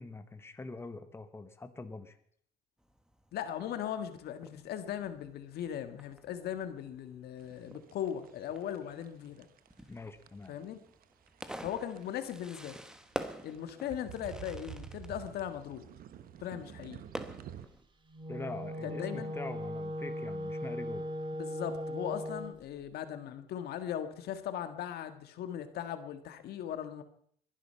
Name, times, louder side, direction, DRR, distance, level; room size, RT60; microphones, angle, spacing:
voice 1, 0.0-2.2 9.9-10.5 18.3-21.1, left 3 dB, 15° left, 9 dB, 1.3 m, -44 dB
Fireworks, 2.8-17.8, right 1 dB, 5° right, 1.3 m, -48 dB
voice 2, 3.3-9.5 10.5-10.8 11.6-12.8 13.4-15.8 16.4-17.0 18.8-19.3 21.4-27.0, left 10 dB, 70° left, 9 dB, 1.7 m, -38 dB
sound 1, 7.4-17.7, right 10 dB, 60° right, 1.1 m, -50 dB
Wind instrument woodwind instrument, 18.1-22.6, equal, 30° right, 2.0 m, -38 dB
21.0 x 11.0 x 5.7 m, 0.64 s
cardioid pair, 110°, 17 cm